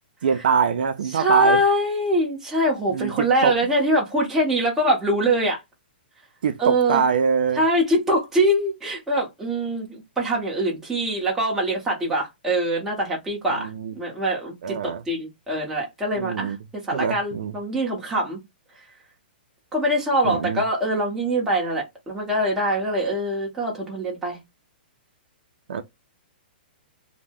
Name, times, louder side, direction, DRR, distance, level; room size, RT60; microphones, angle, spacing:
voice 1, 0.2-1.6 2.9-3.5 6.4-7.6 13.6-13.9 14.6-15.0 16.2-16.6 16.9-17.5 20.2-20.6 25.7-25.8, right 6 dB, 60° right, 0.5 m, -23 dB
voice 2, 1.1-5.6 6.6-7.0 7.6-16.6 16.8-18.4 19.7-24.4, right 1 dB, 5° right, 0.9 m, -23 dB
2.8 x 2.1 x 3.3 m
hypercardioid pair, 170°, 6 cm